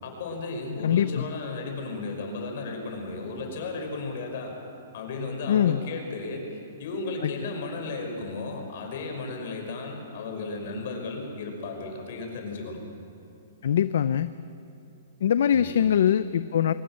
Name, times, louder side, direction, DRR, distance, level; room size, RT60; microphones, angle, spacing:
voice 1, 0.0-4.5 4.9-6.5 6.8-12.8 15.5-15.7, left 3 dB, 55° left, 3 dB, 5.7 m, -34 dB
voice 2, 0.8-1.3 5.5-5.8 7.2-7.3 13.6-14.3 15.2-16.7, left 9 dB, 70° left, 13 dB, 0.6 m, -22 dB
23.0 x 20.5 x 7.7 m, 2.9 s
hypercardioid pair, 160°, 0 cm